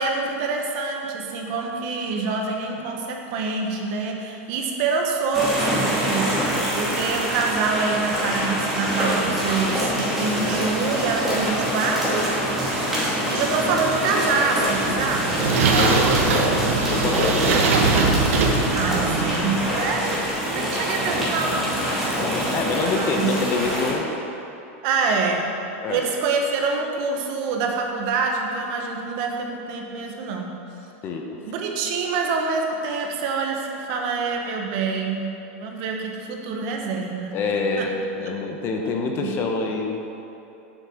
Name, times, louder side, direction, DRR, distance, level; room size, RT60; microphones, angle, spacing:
voice 1, 0.0-12.3 13.0-15.4 18.7-21.7 23.0-23.4 24.8-25.5 25.9-30.6 31.5-37.4 37.8-37.9 39.1-39.4, right 4 dB, 45° right, 2 dB, 1.2 m, -26 dB
sound 1, 5.3-23.9, equal, ahead, 2.1 m, -25 dB
voice 2, 13.0-13.4 15.7-17.7 22.1-24.1 25.8-26.0 31.0-31.5 37.3-40.1, left 4 dB, 30° left, 2 dB, 0.8 m, -27 dB
sound 2, 14.8-19.8, right 4 dB, 75° right, 1.2 m, -22 dB
7.7 x 6.3 x 6.4 m, 2.8 s
supercardioid pair, 155°, 7 cm